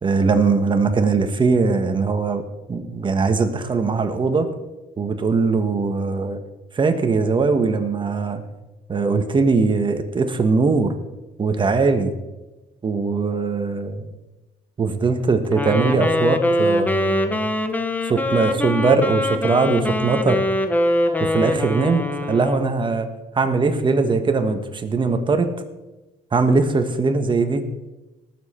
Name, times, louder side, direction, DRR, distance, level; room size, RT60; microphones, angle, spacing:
voice 1, 0.0-2.4 2.7-4.5 5.0-6.4 6.7-8.4 8.9-10.9 11.4-12.1 12.8-14.1 14.8-17.5 18.0-20.4 21.2-23.1 23.3-25.5 26.3-27.6, right 4 dB, 30° right, 7 dB, 1.5 m, -20 dB
Wind instrument woodwind instrument, 15.5-22.7, left 1 dB, 10° left, 1.0 m, -23 dB
19.5 x 7.5 x 4.5 m, 1.1 s
cardioid pair, 110°, 17 cm